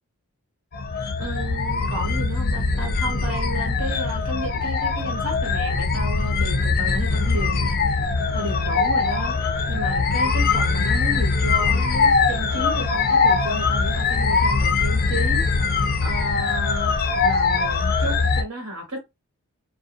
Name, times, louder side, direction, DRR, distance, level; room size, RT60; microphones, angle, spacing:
sound 1, 0.7-18.4, left 4 dB, 40° left, 0.3 m, -22 dB
voice 1, 1.2-7.7 8.3-9.3 9.7-15.4 16.0-17.0 17.2-19.0, right 1 dB, 85° right, 1.4 m, -32 dB
2.7 x 2.1 x 2.6 m
head